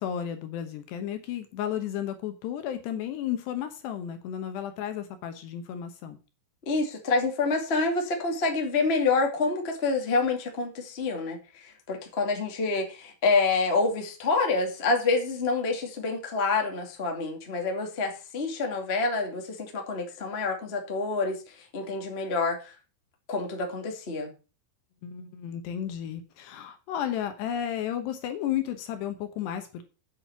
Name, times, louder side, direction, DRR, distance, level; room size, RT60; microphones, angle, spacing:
voice 1, 0.0-6.2 25.0-30.0, left 10 dB, 70° left, 8 dB, 2.9 m, -33 dB
voice 2, 6.6-21.4 21.7-22.7 23.3-24.3, left 3 dB, 30° left, 3 dB, 1.1 m, -27 dB
8.5 x 7.9 x 7.0 m, 0.33 s
omnidirectional pair, 5.6 m